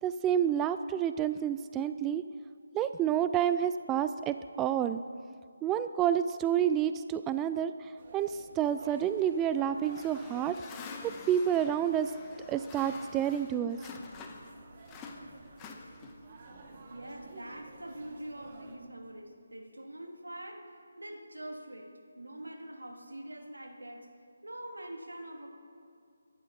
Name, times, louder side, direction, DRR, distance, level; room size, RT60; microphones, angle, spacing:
voice 1, 0.0-2.2 2.7-5.0 5.6-12.1 12.5-13.8, right 9 dB, 10° right, 11 dB, 0.3 m, -29 dB
sound 1, 8.0-18.8, right 3 dB, 35° right, 2.0 m, -53 dB
sound 2, 9.8-14.6 14.9-16.3, left 4 dB, 15° left, 1.3 m, -47 dB
voice 2, 16.9-24.1 24.4-25.6, right 1 dB, 85° right, 1 dB, 2.8 m, -44 dB
23.0 x 11.5 x 4.2 m, 2.4 s
figure-of-eight pair, 155°, 0 cm